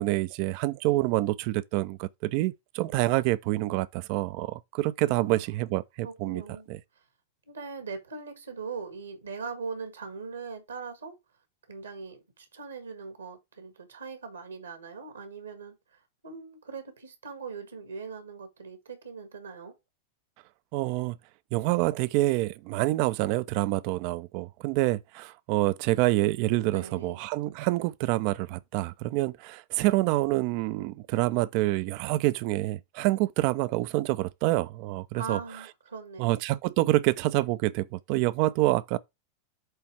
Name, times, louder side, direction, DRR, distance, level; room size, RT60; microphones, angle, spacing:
voice 1, 0.0-6.4 6.7-6.8 20.7-21.2 21.5-35.4 36.2-39.0, right 18 dB, 45° right, 0.5 m, -27 dB
voice 2, 5.1-5.5 6.0-6.7 7.5-11.2 11.7-19.8 26.7-27.2 35.1-36.3, right 5 dB, 75° right, 1.6 m, -40 dB
8.0 x 3.4 x 4.5 m
figure-of-eight pair, 90°, 0 cm